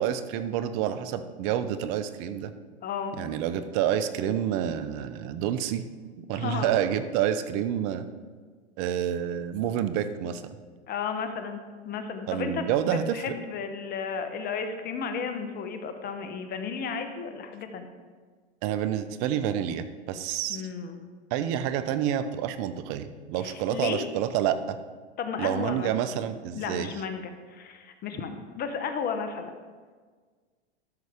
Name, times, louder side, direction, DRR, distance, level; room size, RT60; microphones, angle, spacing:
voice 1, 0.0-2.5 3.2-5.8 6.3-8.1 8.8-10.4 12.3-13.4 18.6-20.6 21.3-24.8 25.4-26.9, right 10 dB, 45° right, 11 dB, 0.7 m, -28 dB
voice 2, 2.8-3.1 6.3-6.7 10.9-17.9 20.5-21.0 23.4-24.1 25.2-25.9 26.5-29.5, left 6 dB, 30° left, 7 dB, 1.0 m, -33 dB
13.0 x 6.2 x 3.6 m, 1.5 s
hypercardioid pair, 115°, 33 cm